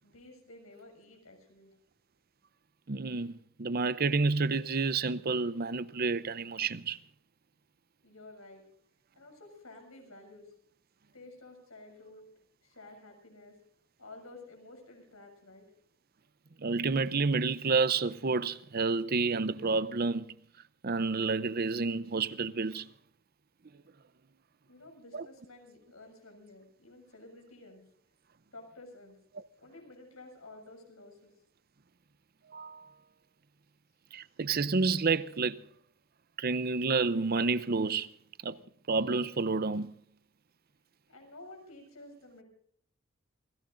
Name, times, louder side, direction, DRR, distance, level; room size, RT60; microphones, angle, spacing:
voice 1, 0.0-1.7 8.0-8.6 9.2-10.5 11.1-12.3 12.6-13.6 14.0-15.7 24.6-27.8 28.5-29.2 29.6-31.3 41.1-42.4, left 2 dB, 80° left, 7.3 m, -52 dB
voice 2, 2.9-7.0 16.6-20.3 20.8-22.9 25.1-25.3 32.5-32.9 34.1-35.6 36.4-38.1 38.4-38.6 38.9-40.0, right 4 dB, 45° right, 0.6 m, -29 dB
28.5 x 17.5 x 2.6 m
head